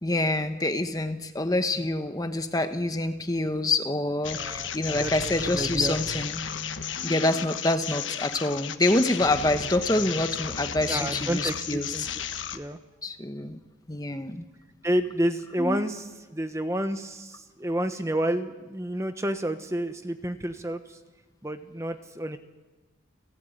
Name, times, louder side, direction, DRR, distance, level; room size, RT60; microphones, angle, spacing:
voice 1, 0.0-6.4 7.0-12.1 13.0-13.6 13.9-14.4 15.6-15.8, left 2 dB, 20° left, 8 dB, 1.0 m, -26 dB
sound 1, 4.2-12.6, left 7 dB, 75° left, 1.3 m, -33 dB
voice 2, 4.3-5.9 10.9-12.0 12.5-12.8 14.8-20.8 21.4-22.4, right 1 dB, 15° right, 8 dB, 1.1 m, -30 dB
30.0 x 15.0 x 9.2 m, 1.2 s
head